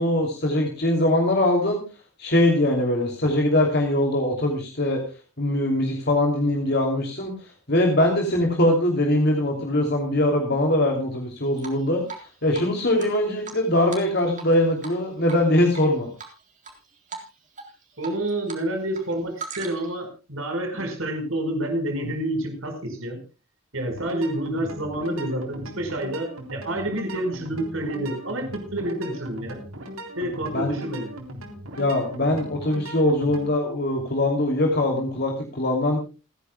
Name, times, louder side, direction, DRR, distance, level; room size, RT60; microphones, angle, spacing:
voice 1, 0.0-1.8 2.2-5.0 5.4-12.0 12.4-16.1 30.5-30.8 31.8-36.0, left 1 dB, 50° left, 1 dB, 2.8 m, -22 dB
Drip, 11.6-12.3 12.5-12.6 13.0-14.5 14.8-15.0 15.3-15.8 16.2-16.7 17.1-17.3 17.6-18.6 18.9-20.0, right 5 dB, 35° right, 3.8 m, -38 dB
voice 2, 18.0-23.2 23.7-29.6 30.2-31.1, right 1 dB, 70° right, 5 dB, 4.9 m, -28 dB
sound 1, 23.9-33.5, equal, 90° right, 3.7 m, -39 dB
29.0 x 10.5 x 2.3 m, 0.31 s
head